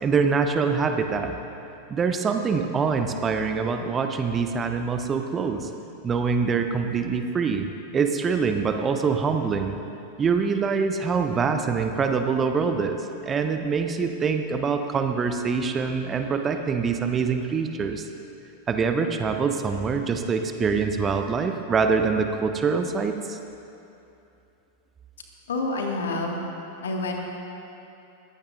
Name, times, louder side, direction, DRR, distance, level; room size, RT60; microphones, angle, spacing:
voice 1, 0.0-1.4 1.9-5.7 6.0-7.7 7.9-9.8 10.2-18.1 18.7-23.4, right 5 dB, 20° right, 6 dB, 0.8 m, -24 dB
voice 2, 25.5-26.5 26.8-27.1, left 2 dB, 65° left, 0 dB, 2.0 m, -27 dB
20.5 x 15.5 x 2.6 m, 2.8 s
figure-of-eight pair, 90°, 0 cm